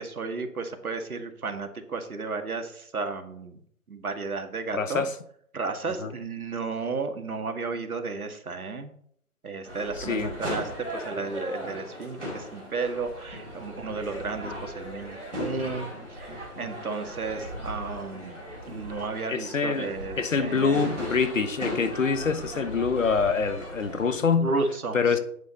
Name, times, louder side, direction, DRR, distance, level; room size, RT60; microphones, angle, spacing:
voice 1, 0.0-3.6 3.9-5.0 5.5-8.9 9.4-15.9 16.2-18.4 18.7-20.8 24.4-25.2, right 4 dB, 75° right, 1.9 m, -33 dB
voice 2, 4.7-5.1 6.0-6.1 10.0-10.3 19.3-24.5 24.9-25.2, left 5 dB, 60° left, 1.3 m, -25 dB
sound 1, 9.6-24.1, equal, ahead, 0.7 m, -37 dB
10.5 x 8.3 x 4.2 m
figure-of-eight pair, 160°, 44 cm